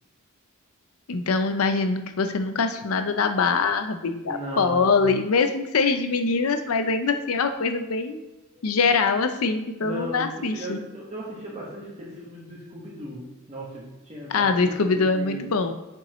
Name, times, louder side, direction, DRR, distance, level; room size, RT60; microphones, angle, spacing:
voice 1, 1.1-8.2 8.6-10.8 14.3-15.7, left 4 dB, 90° left, 8 dB, 0.6 m, -23 dB
voice 2, 4.3-5.1 8.5-8.7 9.8-15.5, right 1 dB, 30° right, -5 dB, 1.4 m, -37 dB
7.0 x 5.5 x 3.1 m, 1.0 s
head